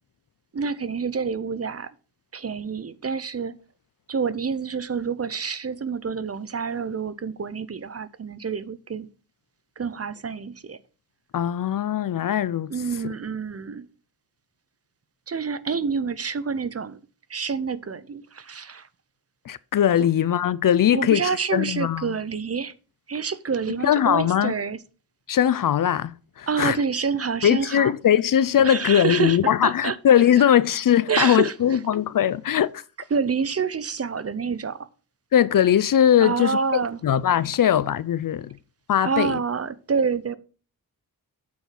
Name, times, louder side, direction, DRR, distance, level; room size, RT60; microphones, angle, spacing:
voice 1, 0.5-1.9 2.3-3.6 4.1-9.1 9.8-10.8 12.7-13.9 15.3-17.0 17.3-18.9 20.9-22.7 23.1-24.8 26.5-27.9 28.6-30.0 30.4-30.5 31.1-31.8 33.1-34.9 36.2-37.0 39.0-40.3, right 5 dB, 40° right, 0.7 m, -27 dB
voice 2, 11.3-12.7 19.5-21.2 21.5-22.1 23.8-24.5 25.3-26.8 27.4-32.8 35.3-36.6 37.0-38.6 38.9-39.3, left 10 dB, 60° left, 0.5 m, -20 dB
8.5 x 4.5 x 5.7 m
cardioid pair, 55°, 37 cm